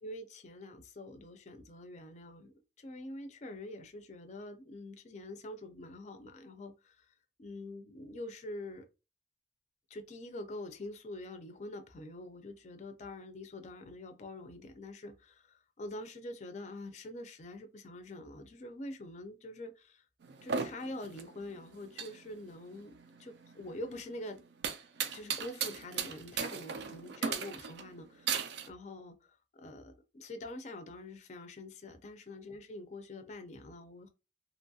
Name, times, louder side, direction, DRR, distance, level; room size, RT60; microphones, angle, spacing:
voice 1, 0.0-8.9 9.9-20.0 20.4-24.4 25.1-34.1, left 1 dB, 40° left, 0.4 m, -45 dB
sound 1, 20.2-28.7, right 6 dB, 65° right, 0.4 m, -38 dB
2.9 x 2.3 x 2.6 m
head